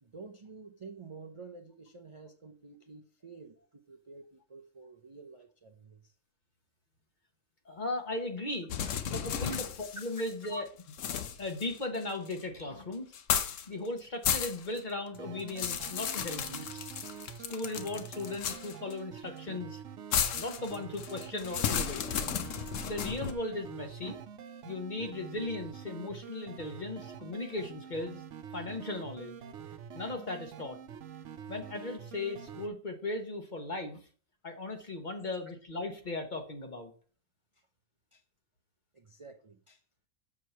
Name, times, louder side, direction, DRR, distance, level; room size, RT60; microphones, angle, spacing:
voice 1, 0.0-6.1 10.5-10.6 38.1-38.2 38.9-39.8, right 3 dB, 45° right, 0.4 m, -49 dB
voice 2, 7.6-8.7 9.0-10.6 11.4-16.8 17.4-19.8 20.3-22.0 22.8-24.2 24.6-28.2 28.5-29.4 29.9-30.8 31.5-34.0 34.4-36.9, left 2 dB, 35° left, 1.2 m, -37 dB
sound 1, 8.7-10.5 10.9-12.4 13.1-13.7 14.0-14.8 15.1-18.9 20.1-23.3, left 8 dB, 65° left, 1.1 m, -34 dB
sound 2, 15.1-32.7, right 8 dB, 65° right, 0.9 m, -46 dB
7.3 x 4.7 x 5.7 m
omnidirectional pair, 1.5 m